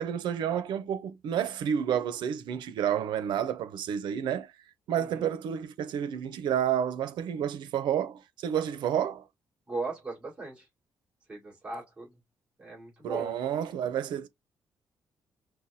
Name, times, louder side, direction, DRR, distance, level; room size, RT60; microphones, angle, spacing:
voice 1, 0.0-4.5 4.9-9.2 13.0-14.3, right 9 dB, 85° right, 0.6 m, -30 dB
voice 2, 5.0-5.3 9.7-10.7 11.3-12.1 12.6-13.4, right 3 dB, 15° right, 2.1 m, -38 dB
5.7 x 2.2 x 2.6 m
cardioid pair, 180°, 8 cm